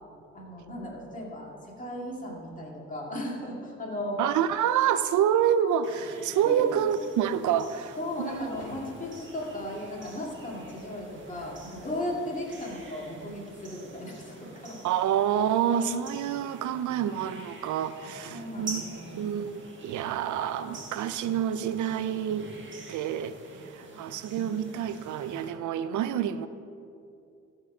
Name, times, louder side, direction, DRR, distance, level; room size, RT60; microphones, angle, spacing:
voice 1, 0.3-4.2 6.5-6.7 8.0-14.8 18.3-19.2, left 1 dB, 25° left, -3 dB, 2.5 m, -36 dB
voice 2, 4.2-8.5 14.8-18.8 19.2-22.5 22.9-26.5, right 9 dB, 75° right, 13 dB, 0.6 m, -28 dB
sound 1, 5.8-25.5, right 2 dB, 40° right, 1.8 m, -46 dB
sound 2, 8.2-13.4, left 2 dB, 55° left, 1.6 m, -53 dB
14.0 x 4.7 x 6.0 m, 2.6 s
cardioid pair, 90°, 30 cm